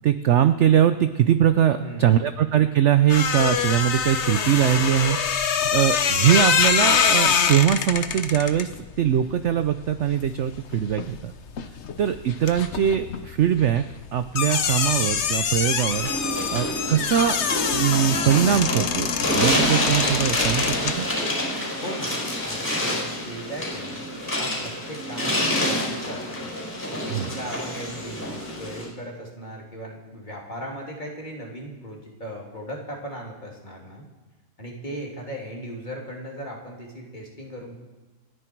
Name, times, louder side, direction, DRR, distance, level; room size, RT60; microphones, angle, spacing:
voice 1, 0.0-8.7 9.0-11.3 12.0-13.8 14.1-16.1 16.5-17.4 17.7-21.1 27.1-27.3, right 10 dB, 60° right, 10 dB, 0.8 m, -21 dB
voice 2, 1.8-2.3 21.8-24.0 24.4-26.5 26.9-34.0 34.6-37.8, right 1 dB, 30° left, -1 dB, 3.0 m, -37 dB
sound 1, 3.1-11.2 11.5-21.0, left 7 dB, 50° left, 1.0 m, -25 dB
sound 2, 15.9-28.9, left 1 dB, 10° left, 5.1 m, -27 dB
28.5 x 10.0 x 4.6 m, 1.2 s
omnidirectional pair, 1.7 m